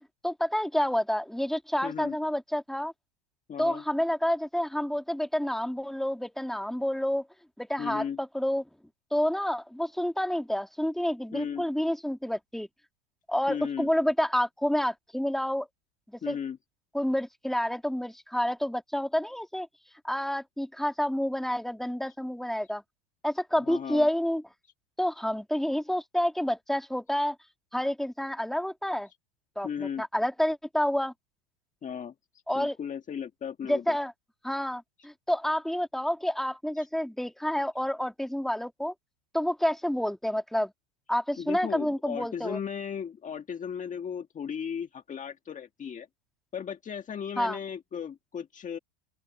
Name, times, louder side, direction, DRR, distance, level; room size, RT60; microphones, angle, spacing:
voice 1, 0.2-2.9 3.6-7.3 7.6-8.6 9.1-12.7 13.3-15.7 16.3-16.4 16.9-19.7 20.0-22.8 23.2-24.4 25.0-27.4 27.7-29.1 29.6-31.1 32.5-32.8 33.7-34.1 34.4-38.9 39.3-40.7 41.1-42.6 47.4-47.6, equal, ahead, 2.5 m, -29 dB
voice 2, 1.8-2.2 3.5-3.8 7.8-8.2 11.3-11.7 13.5-13.9 16.2-16.6 23.6-24.1 29.6-30.0 31.8-32.1 32.5-34.0 36.8-36.9 41.4-46.1 46.5-48.8, left 7 dB, 25° left, 1.7 m, -36 dB
open air
supercardioid pair, 120°, 31 cm